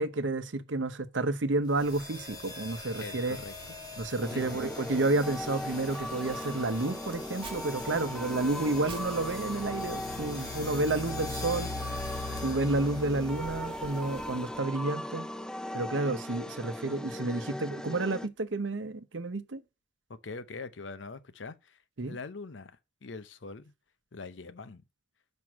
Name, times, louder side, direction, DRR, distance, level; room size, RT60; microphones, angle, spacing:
voice 1, 0.0-3.4 4.0-11.7 12.4-15.3 15.7-19.6 22.0-22.2, right 2 dB, 80° right, 0.9 m, -30 dB
sound 1, 1.7-14.6, left 3 dB, 25° left, 2.9 m, -42 dB
voice 2, 3.0-3.5 4.3-4.7 8.1-8.2 20.1-21.8 22.1-23.7 24.1-24.8, left 3 dB, 75° left, 0.7 m, -43 dB
sound 2, 4.2-18.3, left 1 dB, 5° left, 0.4 m, -39 dB
Crumpling crinkling, 5.9-11.5, right 4 dB, 30° right, 1.6 m, -53 dB
6.2 x 5.3 x 6.2 m
head